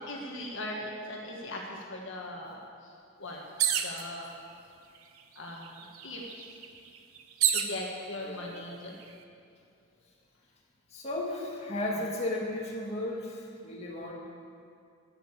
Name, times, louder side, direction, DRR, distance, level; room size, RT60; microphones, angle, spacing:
voice 1, 0.1-2.6 2.8-2.9 3.2-3.4 3.8-4.3 5.3-6.2 7.5-8.9, left 1 dB, 60° left, -1 dB, 1.7 m, -39 dB
sound 1, 3.6-4.0 5.0-5.1 5.4-7.8 8.5-9.0, right 9 dB, 80° right, 0.9 m, -29 dB
voice 2, 8.2-8.7 10.9-14.1, left 1 dB, 30° left, -3 dB, 1.9 m, -35 dB
11.5 x 8.9 x 8.7 m, 2.4 s
head